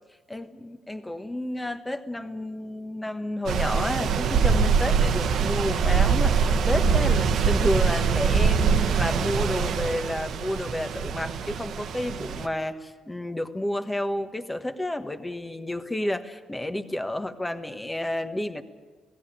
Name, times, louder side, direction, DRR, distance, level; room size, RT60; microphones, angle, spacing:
voice 1, 0.3-18.6, left 1 dB, 10° left, 8 dB, 1.3 m, -31 dB
sound 1, 3.5-12.5, right 6 dB, 75° right, 1.2 m, -23 dB
16.5 x 16.5 x 10.0 m, 1.4 s
cardioid pair, 90°, 0 cm